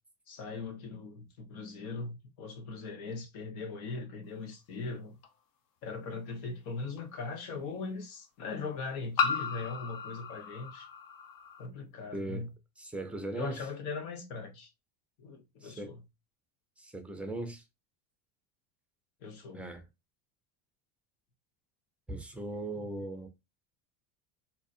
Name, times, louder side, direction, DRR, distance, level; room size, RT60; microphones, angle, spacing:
voice 1, 0.3-5.2 5.8-10.9 11.6-12.5 13.3-14.7 15.2-16.0 19.2-19.6, left 4 dB, 75° left, 1.3 m, -40 dB
sound 1, 5.2-5.3 7.0-7.1 9.2-11.7, left 5 dB, 50° left, 0.7 m, -34 dB
voice 2, 12.1-12.5 12.8-13.6 15.6-15.9 16.8-17.6 19.5-19.8 22.1-23.3, right 1 dB, 5° right, 0.5 m, -38 dB
3.9 x 2.8 x 2.5 m
cardioid pair, 135°, 43 cm